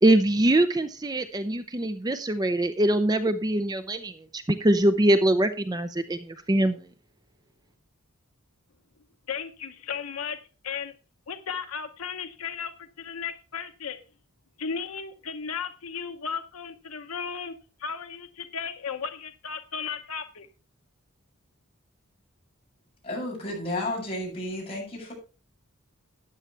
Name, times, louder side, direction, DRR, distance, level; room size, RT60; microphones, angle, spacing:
voice 1, 0.0-6.8, right 1 dB, 20° right, 10 dB, 0.6 m, -23 dB
voice 2, 9.3-10.4 10.6-10.9 11.3-14.0 14.6-17.5 17.8-20.5, left 6 dB, 80° left, 7 dB, 0.9 m, -35 dB
voice 3, 23.0-25.1, left 1 dB, 30° left, -3 dB, 7.3 m, -32 dB
13.5 x 9.7 x 3.3 m, 0.34 s
head